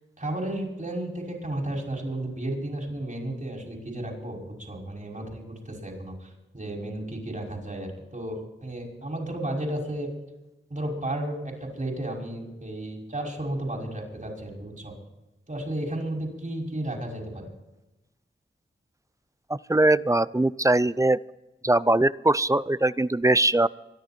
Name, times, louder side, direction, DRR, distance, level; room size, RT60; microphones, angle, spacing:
voice 1, 0.2-10.1 10.7-14.9 15.5-17.5, right 1 dB, 40° right, 0 dB, 5.8 m, -33 dB
voice 2, 19.5-21.2 21.6-23.7, right 2 dB, 15° right, 18 dB, 0.5 m, -21 dB
25.0 x 11.0 x 4.4 m, 1.0 s
wide cardioid pair, 60°, 20 cm